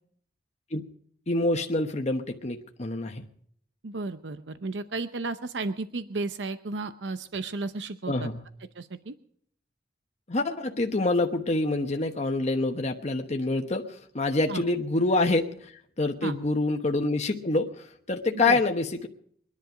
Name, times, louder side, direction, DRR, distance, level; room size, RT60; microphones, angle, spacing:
voice 1, 1.3-3.2 8.1-8.4 10.3-15.7 16.0-19.1, left 2 dB, 40° left, 3 dB, 1.1 m, -26 dB
voice 2, 3.8-8.3 8.8-9.1 14.5-14.6 16.2-16.4 18.4-18.6, right 3 dB, 85° right, 11 dB, 0.7 m, -33 dB
23.0 x 11.0 x 5.0 m, 0.64 s
head